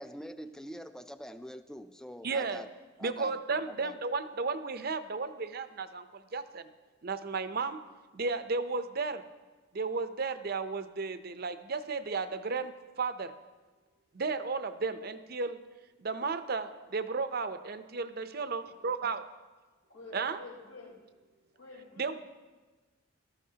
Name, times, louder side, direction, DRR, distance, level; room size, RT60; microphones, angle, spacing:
voice 1, 0.0-2.7 3.0-4.0, equal, 5° left, 10 dB, 0.3 m, -45 dB
voice 2, 2.2-2.6 3.0-6.7 7.0-7.8 8.1-9.2 9.7-13.3 14.1-15.6 16.0-19.2 20.1-20.4 22.0-22.2, right 4 dB, 45° right, 11 dB, 0.6 m, -34 dB
voice 3, 19.9-20.9 21.5-22.2, left 3 dB, 90° left, -6 dB, 5.2 m, -49 dB
18.5 x 13.0 x 2.8 m, 1.3 s
head